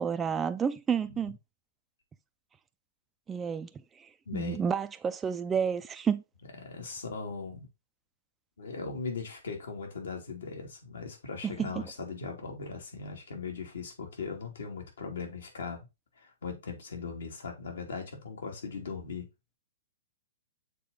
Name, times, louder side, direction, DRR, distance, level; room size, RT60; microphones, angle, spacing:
voice 1, 0.0-1.4 3.3-3.7 4.0-6.2 11.4-11.7, right 7 dB, 15° right, 0.4 m, -30 dB
voice 2, 4.3-4.6 6.6-7.7 8.6-15.9 16.2-19.3, left 4 dB, 80° left, 2.5 m, -39 dB
6.7 x 4.2 x 3.8 m
hypercardioid pair, 125°, 0 cm